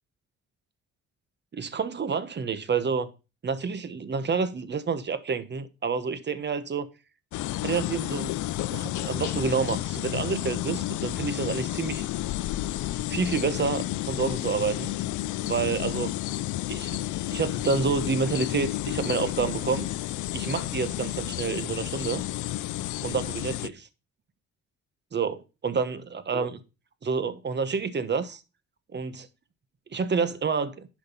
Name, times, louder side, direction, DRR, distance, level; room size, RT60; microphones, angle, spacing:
voice 1, 1.5-3.1 3.4-6.9 7.6-8.3 8.7-12.1 13.1-14.9 15.4-16.1 16.7-17.0 17.3-19.9 20.3-22.2 23.0-23.9 25.1-26.5 27.0-28.4 28.9-29.3 29.9-30.9, right 5 dB, 35° right, 1.2 m, -28 dB
sound 1, 7.3-23.7, left 15 dB, 75° left, 0.5 m, -31 dB
10.5 x 5.2 x 5.5 m
cardioid pair, 90°, 30 cm